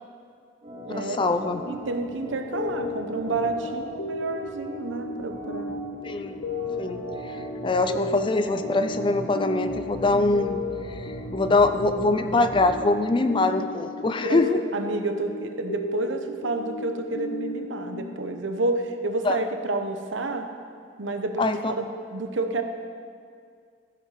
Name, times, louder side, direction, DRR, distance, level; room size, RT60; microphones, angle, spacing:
Organ, 0.6-12.8, right 1 dB, 35° right, 2.4 m, -39 dB
voice 1, 0.9-1.6 6.0-6.4 6.8-10.6 10.9-14.6 19.2-19.4 21.4-21.7, left 2 dB, 25° left, 9 dB, 0.4 m, -24 dB
voice 2, 1.7-5.8 14.0-14.4 14.7-20.5 21.0-22.6, right 2 dB, 80° right, 6 dB, 0.9 m, -30 dB
sound 1, 2.5-18.9, left 2 dB, 90° left, 0.6 m, -35 dB
15.5 x 6.7 x 4.9 m, 2.2 s
head